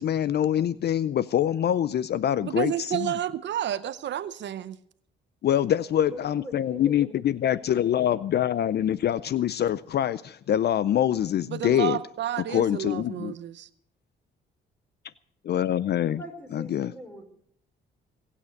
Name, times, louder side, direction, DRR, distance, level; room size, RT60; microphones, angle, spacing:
voice 1, 0.0-3.1 5.4-12.0 12.5-13.3 15.4-16.2 16.5-16.9, left 10 dB, 55° left, 18 dB, 0.5 m, -25 dB
voice 2, 2.4-4.8 11.5-13.7, right 11 dB, 65° right, 14 dB, 0.7 m, -31 dB
voice 3, 6.1-8.4 16.1-17.3, equal, 5° left, 4 dB, 4.5 m, -44 dB
21.5 x 8.5 x 6.5 m, 0.67 s
cardioid pair, 90°, 20 cm